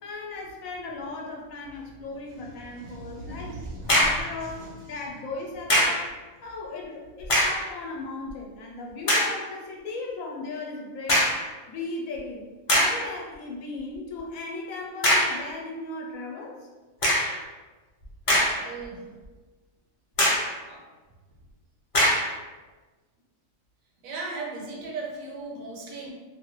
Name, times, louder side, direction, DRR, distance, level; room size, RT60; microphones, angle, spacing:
voice 1, 0.0-3.5 3.9-6.1 6.4-11.3 11.7-16.7, left 3 dB, 75° left, -1 dB, 1.0 m, -37 dB
voice 2, 2.2-4.9 18.5-19.1 20.7-20.8 24.0-26.1, right 3 dB, 80° right, -1 dB, 1.0 m, -38 dB
sound 1, 3.6-4.3 5.7-6.1 7.2-7.7 8.3-8.4 9.1-9.4 11.1-11.5 12.2-12.3 12.7-13.1 15.0-15.4 17.0-17.4 18.0-18.8 19.2-19.3 20.2-20.6 21.9-22.3, equal, 50° left, 0.4 m, -22 dB
2.6 x 2.3 x 2.9 m, 1.3 s
omnidirectional pair, 1.5 m